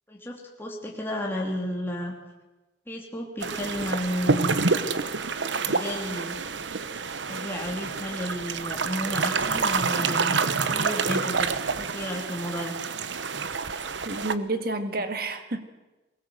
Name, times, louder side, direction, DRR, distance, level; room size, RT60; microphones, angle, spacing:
voice 1, 0.1-2.2 2.9-4.6 5.7-6.4 7.3-12.7, left 1 dB, 10° left, -2 dB, 2.9 m, -33 dB
sound 1, 3.4-14.3, right 4 dB, 75° right, 1.0 m, -28 dB
voice 2, 14.0-15.6, right 2 dB, 55° right, 8 dB, 1.9 m, -30 dB
21.5 x 19.0 x 7.8 m, 1.1 s
head